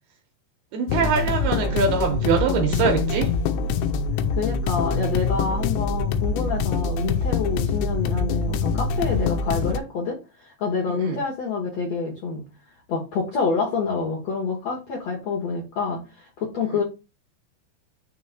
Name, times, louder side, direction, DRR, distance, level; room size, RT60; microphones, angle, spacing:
voice 1, 0.7-3.3 6.4-6.5 10.9-11.2, right 5 dB, 75° right, 2.3 m, -23 dB
sound 1, 0.9-9.8, left 5 dB, 90° left, 2.9 m, -24 dB
voice 2, 4.4-12.4 12.9-16.8, left 4 dB, 70° left, 1.5 m, -27 dB
6.6 x 3.1 x 5.6 m
omnidirectional pair, 5.1 m